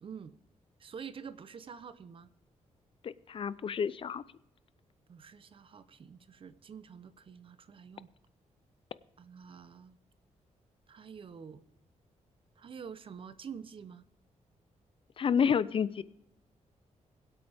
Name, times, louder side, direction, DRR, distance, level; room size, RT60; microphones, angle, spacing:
voice 1, 0.0-0.3 0.8-2.3 5.1-8.1 9.2-10.0 10.9-11.6 12.6-14.0, right 6 dB, 45° right, 14 dB, 0.7 m, -47 dB
voice 2, 3.0-4.2 15.2-16.0, left 7 dB, 45° left, 17 dB, 0.5 m, -29 dB
22.0 x 8.2 x 3.5 m, 0.82 s
wide cardioid pair, 140°, 12 cm